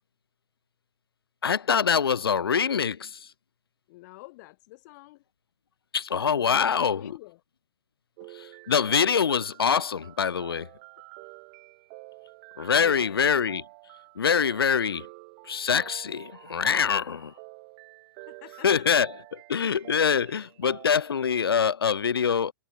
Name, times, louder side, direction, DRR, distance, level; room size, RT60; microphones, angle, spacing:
voice 1, 1.4-3.2 5.9-7.1 8.4-10.7 12.6-13.6 14.2-15.1 15.5-17.3 18.6-19.1 19.5-22.5, left 7 dB, 80° left, 0.9 m, -24 dB
voice 2, 3.9-5.2 6.4-7.4 8.2-8.3 12.7-13.2 18.3-18.9, left 21 dB, 50° left, 4.6 m, -47 dB
sound 1, 8.2-21.5, right 34 dB, 45° right, 6.5 m, -48 dB
figure-of-eight pair, 110°, 12 cm